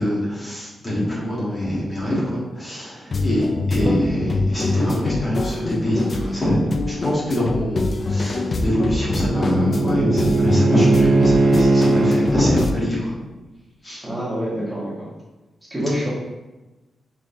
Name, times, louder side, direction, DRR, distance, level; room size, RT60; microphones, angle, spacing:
voice 1, 0.0-13.1 13.8-14.0, equal, 30° left, -7 dB, 1.4 m, -24 dB
sound 1, 3.1-12.7, left 3 dB, 50° left, 0.3 m, -25 dB
Bowed string instrument, 8.4-12.3, right 2 dB, 85° right, 0.6 m, -19 dB
voice 2, 14.0-15.1 15.6-16.1, equal, 15° right, -7 dB, 1.5 m, -26 dB
3.6 x 3.3 x 2.6 m, 1.1 s
cardioid pair, 65°, 0 cm